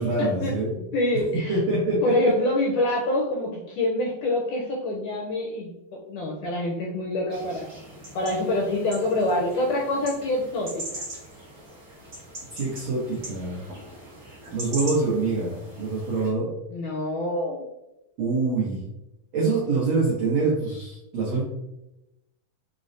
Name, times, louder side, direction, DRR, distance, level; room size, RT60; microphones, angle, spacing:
voice 1, 0.0-0.8 1.5-2.3 12.5-13.6 14.5-16.5 18.2-18.9 19.3-21.4, right 3 dB, 85° right, -5 dB, 1.4 m, -25 dB
voice 2, 0.9-1.6 2.0-5.7 6.1-7.7 8.1-10.8 16.7-17.6, left 1 dB, 80° left, -2 dB, 1.8 m, -26 dB
sound 1, 7.3-16.3, right 1 dB, 55° right, 0.9 m, -41 dB
5.9 x 2.1 x 2.5 m, 0.90 s
omnidirectional pair, 4.1 m